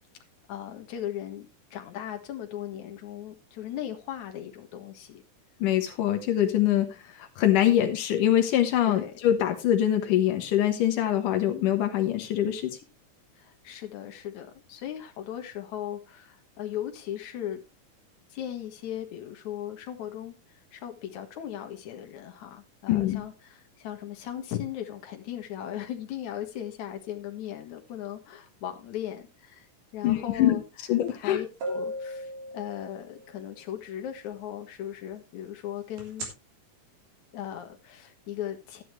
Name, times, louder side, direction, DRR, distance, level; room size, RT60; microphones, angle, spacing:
voice 1, 0.5-5.2 8.8-9.1 13.3-17.6 18.3-29.7 29.9-30.6 31.2-36.3 37.3-38.8, left 11 dB, 65° left, 3.0 m, -37 dB
voice 2, 5.6-12.8 22.9-23.2 30.0-30.6 30.9-31.4, left 11 dB, 90° left, 2.8 m, -24 dB
sound 1, 31.1-31.2 31.6-33.3 36.0-36.3, equal, 90° right, 4.7 m, -35 dB
13.0 x 10.0 x 3.2 m
omnidirectional pair, 3.6 m